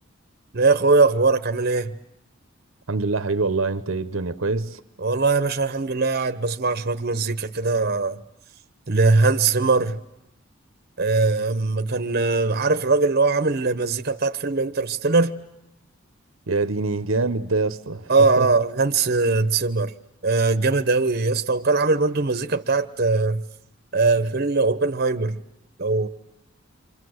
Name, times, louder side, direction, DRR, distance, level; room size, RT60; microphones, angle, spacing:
voice 1, 0.5-1.9 5.0-8.2 8.9-10.0 11.0-15.3 18.1-19.9 20.2-23.4 23.9-25.4 25.8-26.1, right 3 dB, 50° right, 1.0 m, -21 dB
voice 2, 2.9-4.8 16.5-18.5, right 3 dB, 75° right, 1.0 m, -25 dB
29.0 x 25.5 x 7.9 m
head